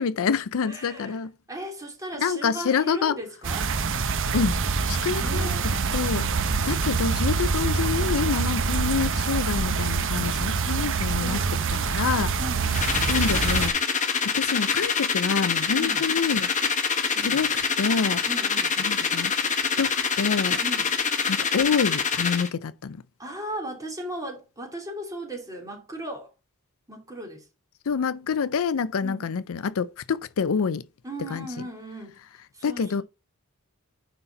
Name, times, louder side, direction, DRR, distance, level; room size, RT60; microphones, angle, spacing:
voice 1, 0.0-1.3 2.2-3.2 4.3-4.6 4.9-11.4 11.9-12.3 13.1-16.5 17.2-17.5 17.8-18.2 18.8-19.3 19.8-20.6 21.3-23.0 27.9-30.8 31.3-31.5 32.6-33.0, left 6 dB, 70° left, 0.5 m, -27 dB
voice 2, 0.6-1.2 1.5-3.7 5.2-5.8 8.5-8.8 11.2-11.7 12.4-13.1 15.8-16.1 17.1-17.4 18.2-18.7 20.6-21.0 23.2-26.3 26.9-27.5 29.0-29.3 31.0-32.2 32.5-33.0, right 1 dB, 15° right, 2.7 m, -37 dB
sound 1, 3.4-13.7, right 5 dB, 60° right, 0.9 m, -25 dB
sound 2, 12.7-22.5, left 6 dB, 35° left, 1.2 m, -25 dB
9.8 x 4.1 x 4.2 m
head